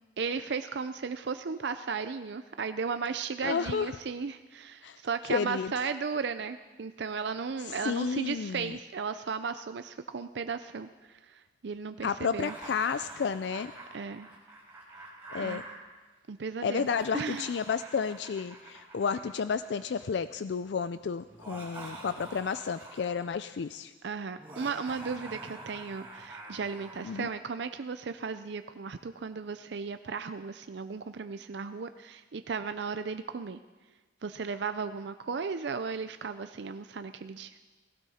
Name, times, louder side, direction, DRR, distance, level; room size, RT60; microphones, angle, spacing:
voice 1, 0.2-12.5 13.9-14.3 15.4-15.6 16.3-16.9 17.1-17.5 24.0-33.6 34.2-37.6, right 5 dB, 65° right, 10 dB, 0.5 m, -35 dB
voice 2, 3.4-3.9 4.8-5.0 5.3-5.7 7.8-8.8 12.0-13.7 15.3-15.6 16.6-23.9 27.0-27.3, left 6 dB, 65° left, 13 dB, 0.4 m, -31 dB
Laughter, 12.3-15.7 16.7-20.0 21.3-23.3 24.4-27.3, right 2 dB, 10° right, 4.5 m, -46 dB
18.0 x 16.5 x 4.3 m, 1.2 s
head